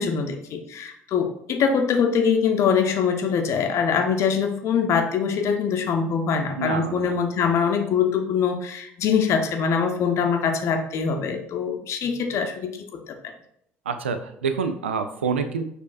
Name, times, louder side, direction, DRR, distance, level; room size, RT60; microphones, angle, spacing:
voice 1, 0.0-13.2, left 6 dB, 50° left, 5 dB, 0.6 m, -23 dB
voice 2, 6.6-7.2 13.9-15.6, right 5 dB, 85° right, 9 dB, 0.3 m, -27 dB
6.2 x 2.7 x 2.5 m, 0.71 s
figure-of-eight pair, 55°, 6 cm